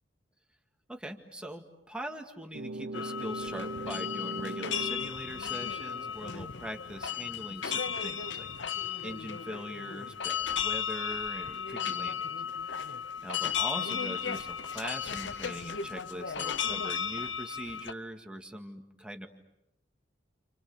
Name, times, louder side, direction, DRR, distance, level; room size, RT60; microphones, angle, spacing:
voice 1, 0.9-8.5 9.0-12.3 12.6-19.3, right 1 dB, 5° right, 4 dB, 2.1 m, -42 dB
sound 1, 2.5-5.2, right 2 dB, 85° right, 1.0 m, -39 dB
sound 2, 2.9-17.9, left 7 dB, 90° left, 0.9 m, -35 dB
29.5 x 29.0 x 6.8 m, 0.85 s
head